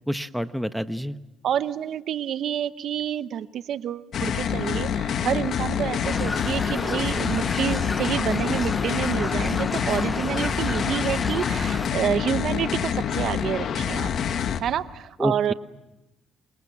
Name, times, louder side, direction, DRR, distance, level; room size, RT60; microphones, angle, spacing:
voice 1, 0.1-1.2 15.2-15.5, equal, ahead, 10 dB, 1.2 m, -27 dB
voice 2, 1.4-14.1 14.6-15.5, right 9 dB, 70° right, 13 dB, 0.9 m, -28 dB
sound 1, 4.1-14.6, left 8 dB, 65° left, 1.9 m, -27 dB
sound 2, 6.0-11.9, left 3 dB, 20° left, 0.9 m, -31 dB
28.0 x 26.0 x 7.3 m, 0.95 s
cardioid pair, 90°, 0 cm